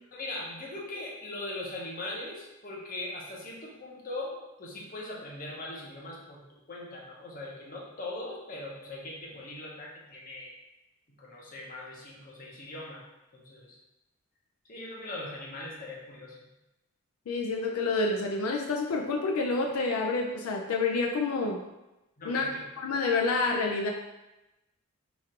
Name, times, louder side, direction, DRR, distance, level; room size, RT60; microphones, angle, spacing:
voice 1, 0.1-10.5 11.1-13.0 13.3-13.8 14.7-16.4 22.2-22.7, left 2 dB, 40° left, -3 dB, 0.8 m, -40 dB
voice 2, 17.3-21.6 22.3-22.4 22.8-23.9, left 3 dB, 85° left, 1 dB, 0.4 m, -28 dB
3.0 x 2.5 x 4.3 m, 0.98 s
head